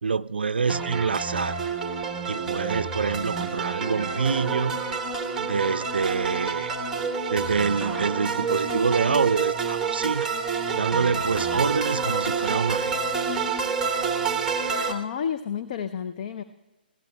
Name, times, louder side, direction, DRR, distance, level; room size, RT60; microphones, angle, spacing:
voice 1, 0.0-1.6 2.3-4.8 5.4-6.7 7.3-10.3 10.7-13.1, right 5 dB, 70° right, 17 dB, 0.4 m, -26 dB
sound 1, 0.7-14.9, right 5 dB, 10° right, 1.0 m, -28 dB
voice 2, 14.9-16.4, left 8 dB, 40° left, 10 dB, 0.5 m, -30 dB
25.0 x 16.0 x 2.2 m, 1.1 s
figure-of-eight pair, 135°, 6 cm